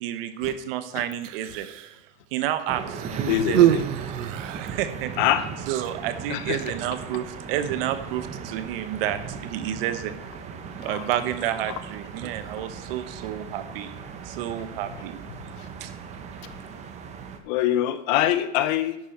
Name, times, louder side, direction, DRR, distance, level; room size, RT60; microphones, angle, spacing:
voice 1, 0.0-1.7 2.3-3.8 4.6-5.1 5.7-10.1 10.8-13.9 14.2-15.2 15.8-15.9, right 11 dB, 50° right, 11 dB, 1.1 m, -30 dB
Human voice, 1.1-2.0 2.9-4.9 5.8-5.9, right 12 dB, 75° right, 0.9 m, -25 dB
sound 1, 2.7-17.4, right 6 dB, 20° right, 0.8 m, -37 dB
voice 2, 3.3-3.8 5.2-5.5 6.3-6.7 10.9-11.1 16.4-16.5 17.4-19.0, left 12 dB, 40° left, 13 dB, 0.7 m, -24 dB
11.0 x 8.9 x 4.5 m, 0.85 s
supercardioid pair, 160°, 37 cm